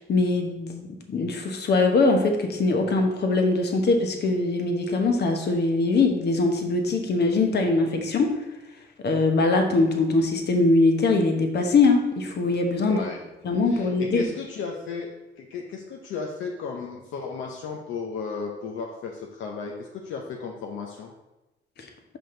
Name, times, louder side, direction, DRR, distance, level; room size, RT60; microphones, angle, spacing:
voice 1, 0.0-8.3 9.0-13.0 13.4-14.2 21.8-21.9, left 3 dB, 55° left, 4 dB, 1.1 m, -22 dB
voice 2, 12.8-13.2 13.7-15.1 15.4-21.1, left 5 dB, 80° left, 1 dB, 0.8 m, -34 dB
6.1 x 5.1 x 3.9 m, 1.0 s
cardioid pair, 90°, 20 cm